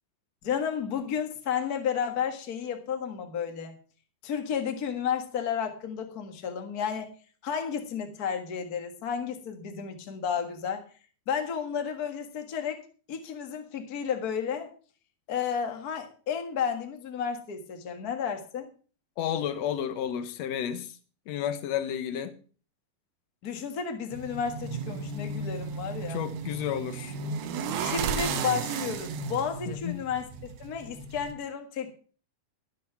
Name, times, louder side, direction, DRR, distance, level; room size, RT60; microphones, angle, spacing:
voice 1, 0.4-3.8 4.2-7.1 7.4-10.8 11.3-12.8 13.1-14.7 15.3-18.7 23.4-26.2 27.8-30.3 30.6-31.9, left 7 dB, 60° left, 1.0 m, -32 dB
voice 2, 19.2-20.9 21.3-22.4 26.1-27.2 29.7-30.0, left 9 dB, 75° left, 1.6 m, -31 dB
sound 1, 24.1-31.3, right 5 dB, 80° right, 3.0 m, -34 dB
12.5 x 8.5 x 5.8 m
omnidirectional pair, 4.4 m